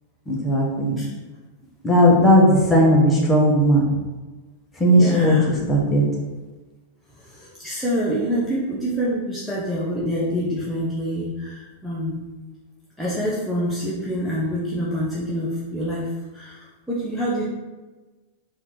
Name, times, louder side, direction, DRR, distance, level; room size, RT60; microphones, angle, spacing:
voice 1, 0.3-1.0 1.8-3.8 4.8-5.4 5.7-6.0, equal, 15° left, -3 dB, 1.4 m, -16 dB
voice 2, 4.9-5.6 7.2-12.3 13.0-17.4, equal, ahead, -7 dB, 1.0 m, -26 dB
4.5 x 2.9 x 3.9 m, 1.2 s
hypercardioid pair, 110°, 0 cm